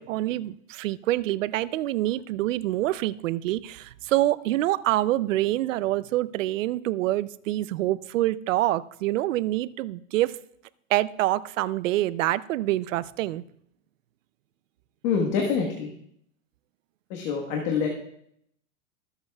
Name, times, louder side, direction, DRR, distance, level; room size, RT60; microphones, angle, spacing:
voice 1, 0.0-10.4 10.9-13.4, right 15 dB, 80° right, 0.6 m, -26 dB
voice 2, 15.0-15.9 17.1-17.9, left 6 dB, 35° left, 1.4 m, -25 dB
24.0 x 8.1 x 2.3 m
supercardioid pair, 175°, 38 cm